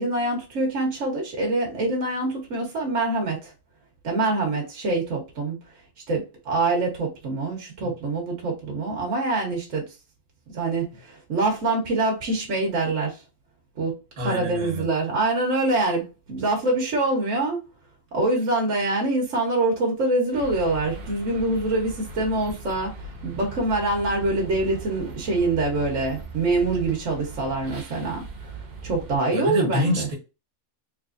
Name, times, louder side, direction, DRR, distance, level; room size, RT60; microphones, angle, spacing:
voice 1, 0.0-3.5 4.0-5.6 6.1-9.9 10.5-13.2 13.8-14.0 14.2-17.6 18.1-22.9 23.2-28.2 28.8-30.1, right 2 dB, 60° right, 1.5 m, -25 dB
voice 2, 14.2-14.9 29.3-30.1, left 1 dB, 75° right, 1.8 m, -27 dB
sound 1, 20.3-29.2, right 2 dB, 40° right, 0.8 m, -39 dB
3.8 x 3.6 x 2.5 m
omnidirectional pair, 1.5 m